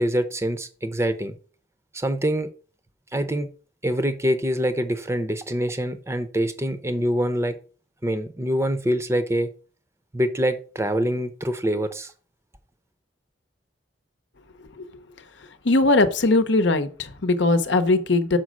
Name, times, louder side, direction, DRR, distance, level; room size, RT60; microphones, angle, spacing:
voice 1, 0.0-1.3 1.9-2.5 3.1-3.5 3.8-7.6 8.0-9.5 10.1-12.1, equal, 15° right, 0.7 m, -25 dB
voice 2, 15.6-18.4, left 2 dB, 75° left, 0.8 m, -20 dB
6.0 x 5.1 x 6.3 m
head